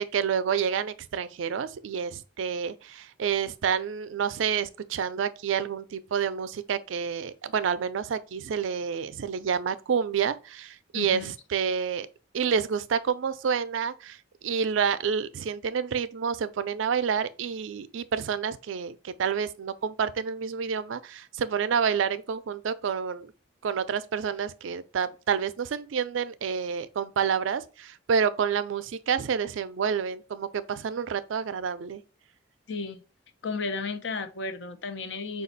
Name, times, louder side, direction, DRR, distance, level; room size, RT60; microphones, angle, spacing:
voice 1, 0.0-12.1 12.3-14.2 14.4-23.3 23.6-32.0, right 7 dB, 80° right, 0.4 m, -29 dB
voice 2, 10.9-11.3 32.7-33.0 33.4-35.4, left 4 dB, 65° left, 0.6 m, -33 dB
5.0 x 2.3 x 3.9 m
head